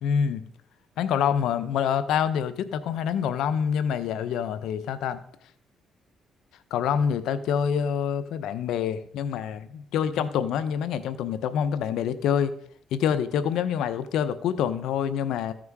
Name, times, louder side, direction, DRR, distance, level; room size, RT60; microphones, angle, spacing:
voice 1, 0.0-0.4 1.0-5.2 6.7-12.5 12.9-15.5, left 8 dB, 85° left, 12 dB, 0.8 m, -26 dB
14.5 x 6.1 x 4.8 m, 0.66 s
cardioid pair, 90°, 0 cm